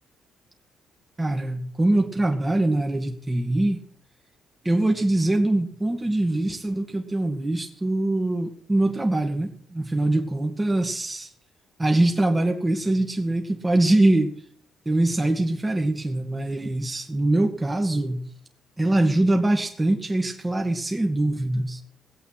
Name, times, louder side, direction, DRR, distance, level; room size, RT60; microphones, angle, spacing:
voice 1, 1.2-3.8 4.6-11.3 11.8-14.3 14.9-18.3 18.8-21.8, right 1 dB, 15° right, 3 dB, 2.0 m, -23 dB
18.5 x 8.3 x 5.8 m, 0.63 s
cardioid pair, 90°, 0 cm